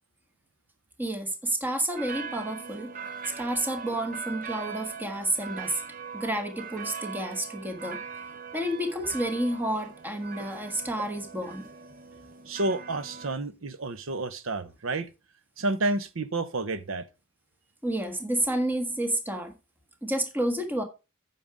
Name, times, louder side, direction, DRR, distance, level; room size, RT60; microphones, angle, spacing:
voice 1, 1.0-2.9 3.4-5.8 6.1-8.0 8.5-11.7 17.8-19.5 20.0-20.8, right 1 dB, 10° right, 1.4 m, -30 dB
sound 1, 2.0-13.3, right 6 dB, 40° right, 0.8 m, -41 dB
voice 2, 12.5-15.1 15.6-17.1, right 2 dB, 70° right, 0.8 m, -30 dB
9.1 x 5.8 x 4.9 m
head